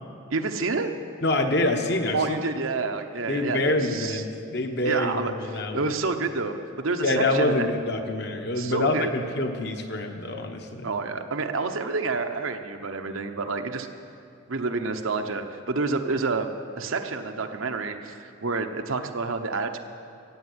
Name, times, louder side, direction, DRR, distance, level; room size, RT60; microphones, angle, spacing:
voice 1, 0.3-0.9 2.1-4.2 4.8-5.3 5.7-7.7 8.6-9.1 10.8-13.9 14.5-19.8, right 3 dB, 80° right, 6 dB, 1.0 m, -28 dB
voice 2, 1.2-2.4 3.3-5.9 7.0-10.9, left 2 dB, 55° left, 4 dB, 1.1 m, -26 dB
15.0 x 8.7 x 8.0 m, 2.5 s
head